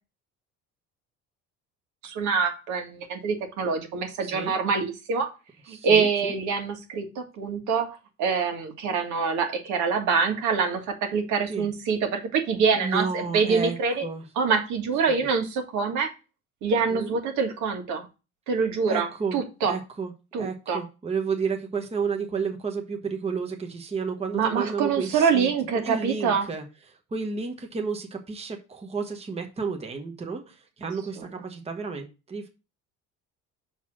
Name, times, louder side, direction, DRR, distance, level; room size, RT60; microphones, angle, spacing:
voice 1, 2.0-5.3 5.7-14.1 14.4-16.1 16.6-18.1 18.5-19.8 20.3-20.8 24.3-26.5, right 5 dB, 75° right, 4 dB, 1.9 m, -25 dB
voice 2, 4.2-4.5 5.7-6.3 11.5-11.7 12.8-14.2 15.1-15.3 16.9-17.1 18.9-20.1 20.4-32.5, right 5 dB, 20° right, 4 dB, 1.1 m, -32 dB
5.9 x 4.1 x 6.1 m, 0.29 s
cardioid pair, 115°, 30 cm